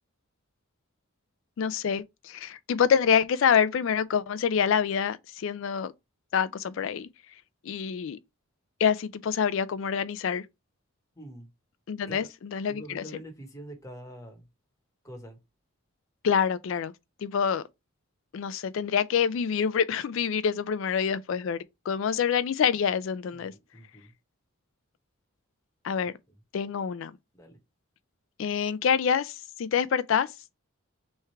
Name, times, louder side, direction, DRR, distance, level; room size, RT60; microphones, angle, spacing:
voice 1, 1.6-5.9 6.3-7.1 7.7-8.2 8.8-10.4 11.9-13.0 16.2-16.9 17.2-17.6 18.3-23.5 25.8-26.1 26.5-27.1 28.4-30.3, left 7 dB, 65° left, 0.4 m, -26 dB
voice 2, 11.2-11.5 12.1-12.3 12.7-14.4 15.0-15.4 23.3-24.1 27.3-27.6, equal, 15° left, 1.0 m, -45 dB
3.5 x 3.2 x 4.3 m
head